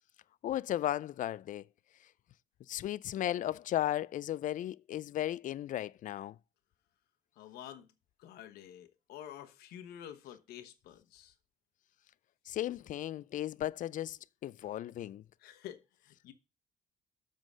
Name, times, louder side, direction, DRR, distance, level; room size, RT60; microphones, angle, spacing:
voice 1, 0.4-1.6 2.7-6.4 12.5-15.2, left 12 dB, 55° left, 0.4 m, -35 dB
voice 2, 7.4-7.9 8.2-11.3 15.4-16.3, left 10 dB, 85° left, 1.1 m, -49 dB
7.5 x 3.9 x 6.2 m
cardioid pair, 85°, 16 cm